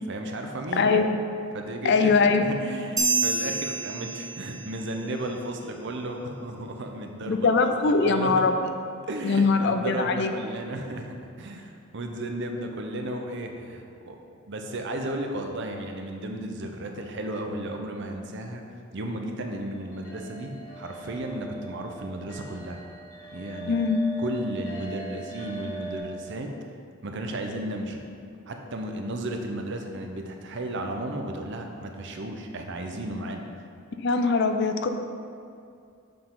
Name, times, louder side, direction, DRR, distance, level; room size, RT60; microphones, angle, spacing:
voice 1, 0.1-1.0 1.5-2.2 2.6-8.4 9.1-14.2 14.5-18.6 18.9-22.8 23.3-23.7 24.2-26.5 27.0-28.0 28.5-33.4, right 1 dB, 60° right, 3 dB, 0.7 m, -34 dB
voice 2, 0.8-1.2 1.8-2.5 7.3-8.5 9.2-10.3 23.7-24.0 34.0-34.9, left 4 dB, 55° left, 7 dB, 0.4 m, -22 dB
sound 1, 3.0-4.8, right 3 dB, 15° right, 0.6 m, -27 dB
sound 2, 19.6-26.0, right 2 dB, 75° left, 1.6 m, -41 dB
6.7 x 5.7 x 3.8 m, 2.4 s
head